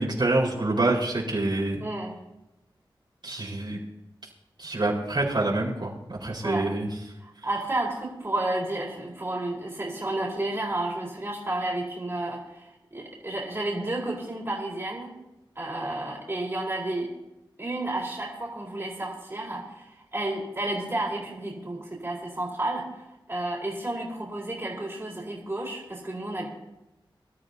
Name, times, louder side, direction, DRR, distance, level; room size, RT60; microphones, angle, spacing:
voice 1, 0.0-1.8 3.2-3.8 4.6-6.9, right 2 dB, 60° right, -4 dB, 4.6 m, -26 dB
voice 2, 1.8-2.2 6.4-6.7 7.2-12.6 12.9-15.1 15.6-17.1 17.6-26.5, right 1 dB, 30° right, -3 dB, 4.1 m, -31 dB
24.0 x 13.0 x 2.8 m, 0.94 s
wide cardioid pair, 80°, 9 cm